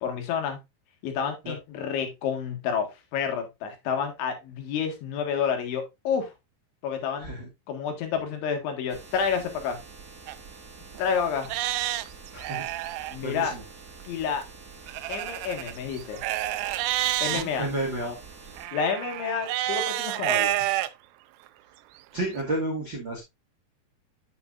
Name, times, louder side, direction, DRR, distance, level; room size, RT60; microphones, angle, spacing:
voice 1, 0.0-0.6 1.0-6.3 6.8-7.4 7.7-9.8 11.0-11.5 13.1-13.5 14.1-14.4 15.1-16.2 17.2-17.7 18.7-20.6, left 6 dB, 75° left, 3.9 m, -29 dB
voice 2, 7.2-7.5 12.3-12.6 12.9-13.6 17.3-18.2 22.1-23.2, right 1 dB, 50° right, 1.4 m, -31 dB
sound 1, 8.9-18.7, right 4 dB, 30° right, 2.1 m, -47 dB
Livestock farm animals working animals, 10.3-10.4 11.0-11.1 11.4-13.2 14.9-17.4 18.6-20.9 21.5-21.6 22.2-22.3, right 15 dB, 85° right, 2.5 m, -29 dB
8.8 x 8.1 x 2.5 m
omnidirectional pair, 5.6 m